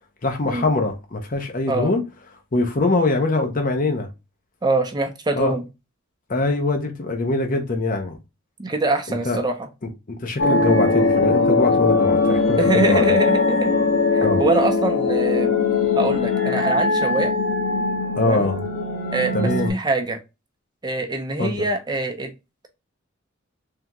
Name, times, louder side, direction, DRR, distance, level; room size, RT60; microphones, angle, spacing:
voice 1, 0.2-2.0 2.5-4.1 5.4-5.5 6.3-8.2 9.1-9.4 10.1-13.1 14.2-14.4 18.2-18.6 19.3-19.7 21.4-21.7, left 2 dB, 40° left, 0.7 m, -23 dB
voice 2, 4.6-5.7 8.6-9.7 12.6-13.8 14.1-15.5 16.0-17.3 18.2-18.5 19.1-20.2 20.8-22.3, right 2 dB, 20° right, 0.6 m, -24 dB
sound 1, 10.4-19.7, left 3 dB, 70° left, 1.1 m, -20 dB
3.7 x 3.3 x 2.9 m
head